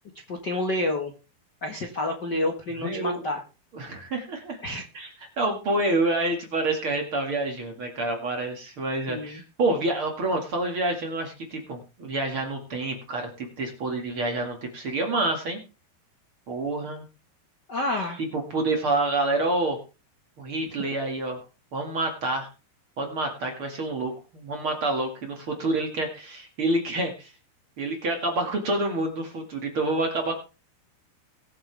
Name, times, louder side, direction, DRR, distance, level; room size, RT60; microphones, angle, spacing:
voice 1, 0.3-1.1 1.6-3.4 4.6-4.9 9.1-9.4 17.7-18.2, left 1 dB, 65° left, 3 dB, 1.0 m, -29 dB
voice 2, 2.8-3.2 3.7-4.6 4.9-5.1 5.4-15.6 16.5-17.0 18.2-19.8 20.4-21.4 21.7-22.5 23.0-27.3 27.8-30.3, right 2 dB, 40° right, 2 dB, 2.4 m, -28 dB
22.0 x 7.8 x 3.5 m, 0.32 s
omnidirectional pair, 4.7 m